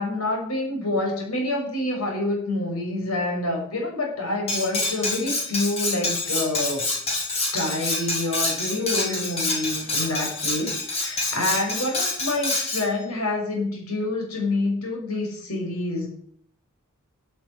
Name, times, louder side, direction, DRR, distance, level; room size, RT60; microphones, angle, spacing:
voice 1, 0.0-6.8 7.5-16.1, left 2 dB, 80° left, 1 dB, 6.4 m, -27 dB
Cutlery silverware, 4.5-12.9, left 2 dB, 30° left, 5.6 m, -27 dB
12.5 x 10.5 x 9.8 m, 0.62 s
head